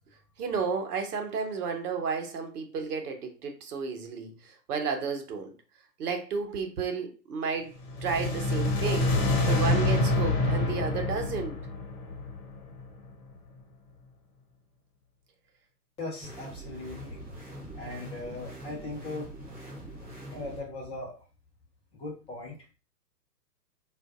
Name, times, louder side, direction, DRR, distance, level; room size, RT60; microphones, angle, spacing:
voice 1, 0.4-5.5 6.0-9.1 9.5-11.6, right 5 dB, 60° right, 5 dB, 1.0 m, -32 dB
sound 1, 7.8-13.0, left 2 dB, 55° left, 1.1 m, -27 dB
voice 2, 16.0-17.2 17.7-19.3 20.3-21.2 21.9-22.6, left 2 dB, 10° left, -3 dB, 0.8 m, -39 dB
sound 2, 16.2-20.6, right 1 dB, 15° right, 0.5 m, -43 dB
3.9 x 2.5 x 2.3 m, 0.34 s
hypercardioid pair, 130°, 50 cm